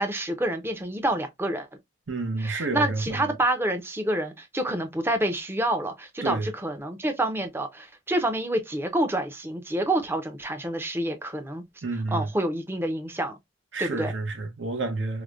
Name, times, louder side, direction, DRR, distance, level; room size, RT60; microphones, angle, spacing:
voice 1, 0.0-1.7 2.4-11.6 12.1-13.4 13.8-14.1, right 1 dB, 10° right, 0.5 m, -28 dB
voice 2, 2.1-3.3 6.2-6.5 11.8-12.3 13.7-15.2, right 3 dB, 80° right, 0.8 m, -29 dB
4.9 x 2.1 x 2.4 m
head